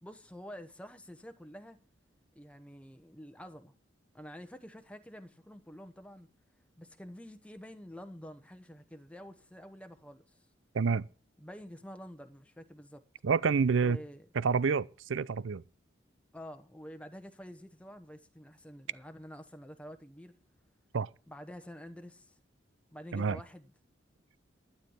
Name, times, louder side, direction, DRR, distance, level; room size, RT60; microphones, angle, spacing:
voice 1, 0.0-1.8 2.3-3.7 4.1-6.3 6.8-10.4 11.4-13.0 13.8-14.3 16.3-20.3 21.3-22.4 22.9-23.7, equal, 5° left, 1.0 m, -48 dB
voice 2, 10.7-11.1 13.2-14.0 14.4-15.6 20.9-21.1 23.1-23.4, right 5 dB, 90° right, 0.5 m, -28 dB
12.5 x 9.7 x 5.6 m
head